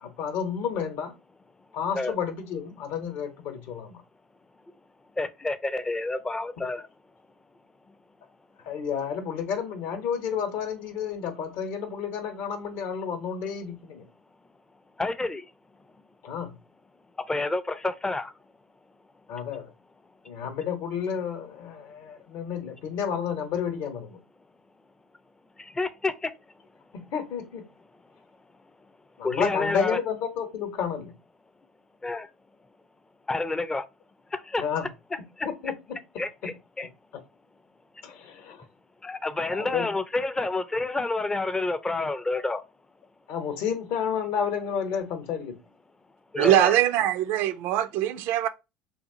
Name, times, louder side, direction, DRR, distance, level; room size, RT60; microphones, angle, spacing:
voice 1, 0.0-1.1 1.7-4.0 8.7-14.0 16.2-16.5 19.3-19.7 20.2-24.2 26.9-27.6 29.2-31.1 34.6-34.8 35.4-36.0 38.0-38.6 39.5-39.9 43.3-45.6, left 7 dB, 55° left, 0.8 m, -31 dB
voice 2, 5.2-6.8 15.0-15.4 17.3-18.3 25.8-26.3 29.2-30.0 32.0-32.3 33.3-33.8 34.3-34.6 35.4-35.5 36.2-36.9 39.0-42.6 46.3-46.7, left 2 dB, 15° left, 0.4 m, -29 dB
voice 3, 46.4-48.5, right 12 dB, 55° right, 0.3 m, -22 dB
2.7 x 2.3 x 2.7 m
hypercardioid pair, 70°, 4 cm